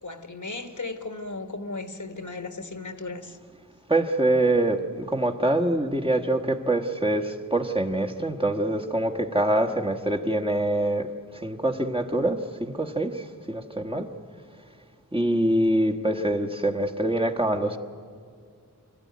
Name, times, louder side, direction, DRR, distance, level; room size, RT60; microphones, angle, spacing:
voice 1, 0.0-3.4, left 3 dB, 60° left, 8 dB, 1.4 m, -36 dB
voice 2, 3.9-14.1 15.1-17.8, right 1 dB, 15° right, 2 dB, 1.4 m, -25 dB
25.5 x 14.0 x 9.5 m, 2.1 s
wide cardioid pair, 45°, 35 cm